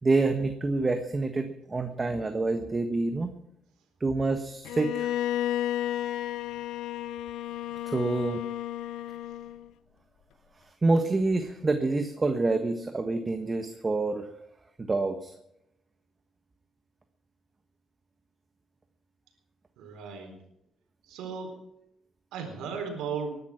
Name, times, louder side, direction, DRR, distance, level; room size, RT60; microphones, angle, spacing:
voice 1, 0.0-3.3 4.0-5.1 7.8-8.4 10.8-14.3 14.8-15.3, right 3 dB, 25° right, 7 dB, 1.5 m, -27 dB
Bowed string instrument, 4.7-9.7, left 12 dB, 90° left, 0.7 m, -32 dB
voice 2, 19.8-20.3 21.1-21.6 22.3-23.4, right 5 dB, 85° right, 4 dB, 4.0 m, -35 dB
20.0 x 11.0 x 6.0 m, 0.78 s
cardioid pair, 90°, 0 cm